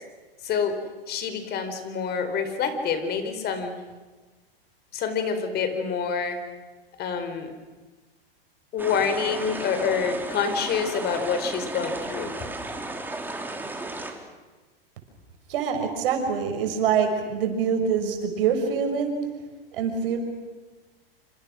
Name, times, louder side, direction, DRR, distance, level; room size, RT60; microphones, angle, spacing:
voice 1, 0.4-0.8 1.1-3.7 4.9-6.4 7.0-7.5 8.7-12.3, left 6 dB, 35° left, 8 dB, 4.4 m, -27 dB
sound 1, 8.8-14.1, right 2 dB, 5° right, 3.6 m, -34 dB
voice 2, 15.5-19.2 19.7-20.2, right 6 dB, 65° right, 5 dB, 6.4 m, -25 dB
27.5 x 26.5 x 6.4 m, 1.3 s
hypercardioid pair, 115°, 30 cm